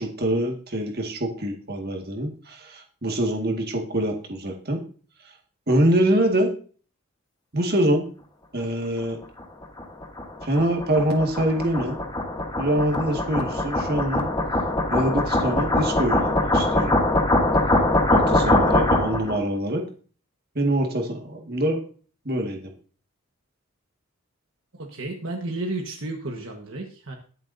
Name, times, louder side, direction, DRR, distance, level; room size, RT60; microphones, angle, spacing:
voice 1, 0.0-4.8 5.7-6.5 7.5-8.1 8.5-9.2 10.4-12.0 12.6-14.3 14.9-17.0 18.1-19.8 20.6-21.8 22.3-22.6, right 1 dB, 45° right, 2 dB, 1.9 m, -24 dB
sound 1, 9.4-19.4, left 1 dB, 20° left, 1.2 m, -22 dB
voice 2, 24.7-27.2, right 2 dB, 60° right, 1 dB, 1.4 m, -32 dB
21.5 x 7.2 x 2.7 m, 0.41 s
head